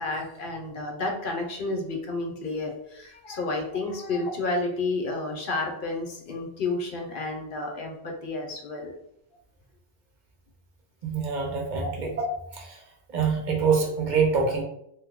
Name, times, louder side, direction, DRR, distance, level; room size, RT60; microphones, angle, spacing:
voice 1, 0.0-8.9, left 2 dB, 60° left, 1 dB, 0.8 m, -31 dB
voice 2, 11.0-12.2 12.5-12.8 13.1-14.6, right 5 dB, 50° right, 0 dB, 0.8 m, -25 dB
3.0 x 2.1 x 3.6 m, 0.75 s
omnidirectional pair, 1.1 m